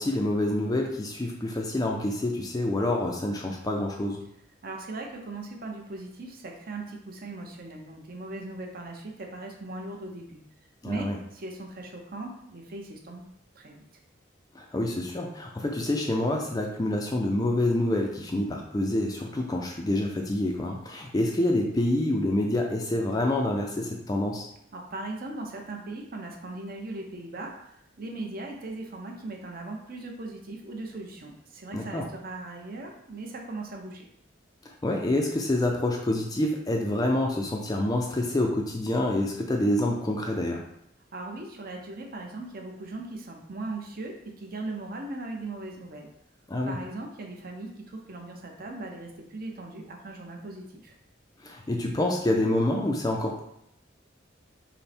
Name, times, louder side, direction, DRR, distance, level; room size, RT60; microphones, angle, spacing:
voice 1, 0.0-4.2 10.8-11.2 14.5-24.5 31.7-32.1 34.8-40.6 46.5-46.8 51.4-53.4, left 1 dB, 20° left, 1 dB, 0.4 m, -27 dB
voice 2, 4.6-10.4 10.8-13.2 13.6-13.8 24.7-27.5 28.0-34.1 41.1-46.1 46.7-50.9, right 2 dB, 50° right, 1 dB, 0.8 m, -39 dB
5.3 x 2.1 x 4.3 m, 0.75 s
head